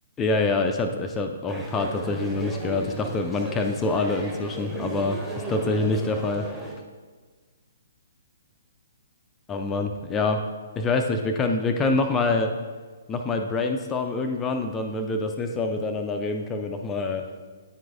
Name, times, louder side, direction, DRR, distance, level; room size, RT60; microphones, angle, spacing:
voice 1, 0.2-5.2 5.5-6.5 9.5-10.4 10.8-12.5 13.1-17.2, left 3 dB, 15° left, 5 dB, 0.4 m, -26 dB
sound 1, 1.5-6.7, right 2 dB, ahead, 0.8 m, -35 dB
9.3 x 4.5 x 2.5 m, 1.5 s
figure-of-eight pair, 125°, 0 cm